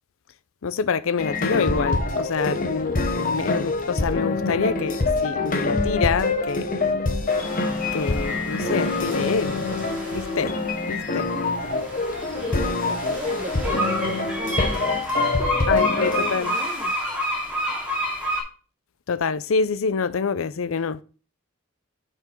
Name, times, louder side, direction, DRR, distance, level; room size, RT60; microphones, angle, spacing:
voice 1, 0.6-6.7 7.9-9.7 10.1-10.5 10.9-11.3 15.7-16.5 19.1-21.0, left 5 dB, 90° left, 0.5 m, -26 dB
sound 1, 1.2-16.4, left 3 dB, 40° left, 1.0 m, -25 dB
sound 2, 7.3-18.4, equal, 5° right, 2.5 m, -30 dB
voice 2, 12.3-16.9, right 1 dB, 35° right, 1.3 m, -37 dB
6.8 x 5.9 x 4.5 m
head